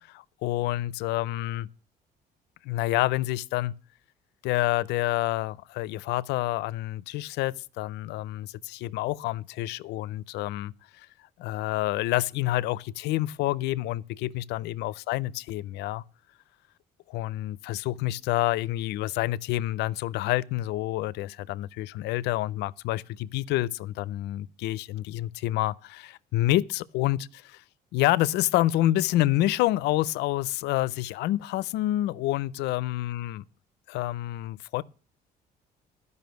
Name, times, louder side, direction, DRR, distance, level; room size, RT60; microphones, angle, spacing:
voice 1, 0.1-1.7 2.6-3.7 4.4-11.1 11.4-16.0 17.1-27.6 27.9-33.4 33.9-34.8, left 15 dB, 85° left, 0.5 m, -28 dB
12.5 x 5.5 x 7.9 m
cardioid pair, 110°, 17 cm